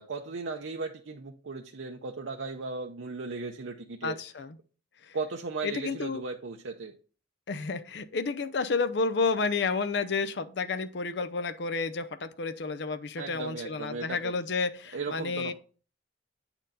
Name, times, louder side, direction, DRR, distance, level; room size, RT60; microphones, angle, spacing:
voice 1, 0.0-4.2 5.1-6.9 13.2-14.3 14.9-15.5, right 4 dB, 90° right, 0.6 m, -36 dB
voice 2, 4.0-4.6 5.0-5.2 5.6-6.2 7.5-15.5, left 4 dB, 60° left, 0.6 m, -31 dB
8.7 x 4.4 x 3.9 m
head